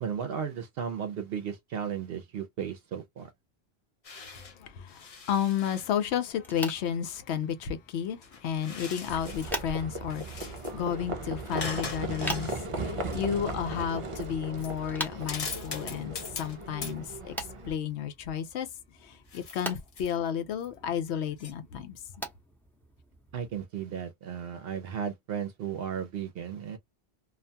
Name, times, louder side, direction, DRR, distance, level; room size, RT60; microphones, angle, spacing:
voice 1, 0.0-3.3 23.3-26.8, right 8 dB, 70° right, 0.7 m, -35 dB
sound 1, 4.0-4.6 4.9-5.9 8.2-9.6 10.0-10.7 11.5-12.6 13.1-13.2 14.1-14.3 14.6-14.8 15.2-16.6 16.8-17.0 19.3-20.2 20.6-20.7 21.4-21.5, left 4 dB, 40° left, 0.6 m, -41 dB
voice 2, 4.6-12.5 12.8-18.7 19.0-22.0, left 8 dB, 90° left, 0.9 m, -32 dB
sound 2, 6.4-23.6, right 1 dB, ahead, 0.7 m, -44 dB
Livestock farm animals working animals, 9.1-17.7, right 2 dB, 45° right, 0.4 m, -37 dB
2.4 x 2.2 x 2.6 m
omnidirectional pair, 1.1 m